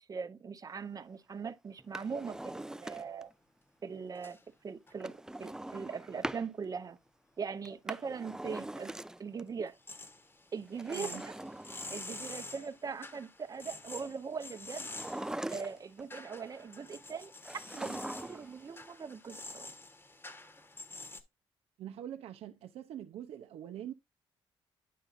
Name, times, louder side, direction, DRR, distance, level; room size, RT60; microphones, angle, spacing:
voice 1, 0.0-3.3 3.8-4.4 4.6-7.0 7.4-8.9 9.2-9.8 10.5-11.3 11.9-14.9 15.5-19.7, right 5 dB, 35° right, 0.7 m, -41 dB
Drawer open or close, 1.8-3.3 5.0-6.5 7.6-9.4 10.7-12.3 14.8-16.0 17.4-18.6 18.8-18.9, right 1 dB, 5° right, 0.4 m, -42 dB
sound 1, 2.2-2.3 4.2-4.4 4.9-5.0 9.7-21.2, left 2 dB, 20° left, 1.1 m, -48 dB
voice 2, 10.9-11.3 21.8-23.9, right 10 dB, 75° right, 0.6 m, -44 dB
9.3 x 5.6 x 2.5 m
cardioid pair, 95°, 10 cm